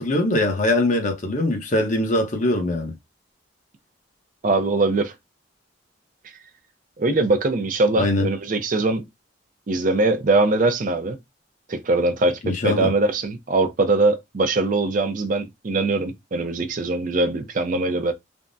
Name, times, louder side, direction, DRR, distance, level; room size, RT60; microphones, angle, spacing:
voice 1, 0.0-2.9 8.0-8.3 12.4-12.9, left 1 dB, 40° left, 0.7 m, -22 dB
voice 2, 4.4-5.1 7.0-9.0 9.7-11.2 11.7-18.1, right 2 dB, 45° right, 0.5 m, -22 dB
3.4 x 2.0 x 2.5 m
head